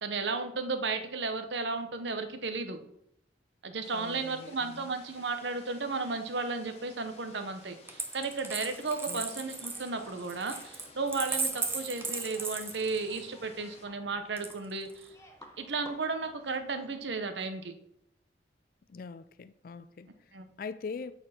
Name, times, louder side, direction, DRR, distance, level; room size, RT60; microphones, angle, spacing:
voice 1, 0.0-2.8 3.6-15.1 15.6-17.7 20.3-20.4, right 3 dB, 80° right, 1.0 m, -34 dB
sound 1, 3.8-13.9, left 3 dB, 35° left, 1.4 m, -55 dB
voice 2, 3.9-4.9 9.1-9.3 18.9-21.1, left 5 dB, 50° left, 0.4 m, -43 dB
Coin (dropping), 7.9-13.3 14.4-15.1, right 3 dB, 15° right, 0.8 m, -36 dB
sound 2, 8.8-17.0, left 1 dB, 15° left, 1.1 m, -56 dB
9.1 x 4.4 x 5.9 m
head